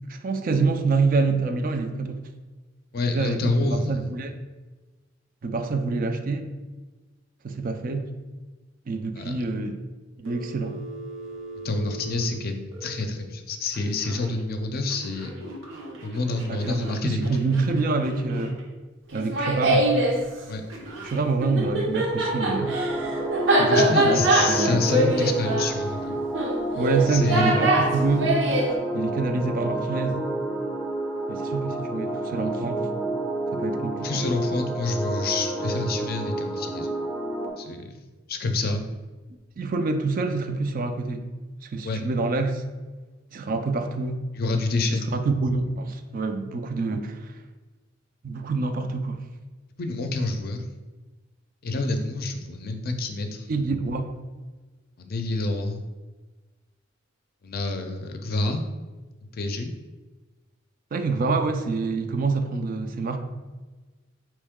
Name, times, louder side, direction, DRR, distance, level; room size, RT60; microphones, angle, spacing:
voice 1, 0.1-2.2 3.0-4.3 5.4-6.5 7.4-8.1 8.9-9.8 10.2-10.8 16.5-18.5 19.1-19.9 21.0-22.8 23.6-24.8 26.7-28.4 28.9-30.2 31.3-32.9 33.5-34.2 39.6-41.2 41.6-42.6 43.3-44.2 45.1-47.3 48.2-49.2 53.5-54.1 60.9-63.2, right 3 dB, 45° right, 7 dB, 0.4 m, -26 dB
voice 2, 2.9-4.1 9.1-9.4 11.6-15.3 16.0-17.3 20.5-20.6 23.7-26.2 27.1-27.6 34.0-36.9 37.6-37.9 38.3-38.8 41.8-42.0 44.3-45.1 49.8-50.6 51.6-53.5 55.0-55.8 57.4-58.6 59.3-59.7, left 3 dB, 50° left, 5 dB, 0.5 m, -27 dB
Telephone, 10.2-13.0 13.7-14.3 14.9-18.6 20.7-21.2, right 2 dB, 90° right, 1.0 m, -40 dB
Laughter, 19.1-20.2 21.4-28.7, right 1 dB, 65° right, 0.8 m, -23 dB
sound 1, 22.1-37.5, right 1 dB, 5° left, 0.5 m, -30 dB
4.5 x 3.0 x 3.5 m, 1.3 s
head